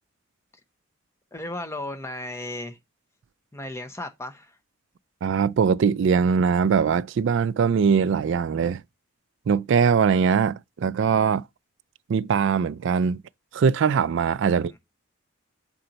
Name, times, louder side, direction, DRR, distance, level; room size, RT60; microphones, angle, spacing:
voice 1, 1.3-2.8 3.5-4.6 14.7-14.8, left 1 dB, 15° left, 0.8 m, -35 dB
voice 2, 5.2-8.8 9.5-11.4 12.1-13.2 13.5-14.7, right 6 dB, 60° right, 0.3 m, -21 dB
7.6 x 4.4 x 3.9 m
head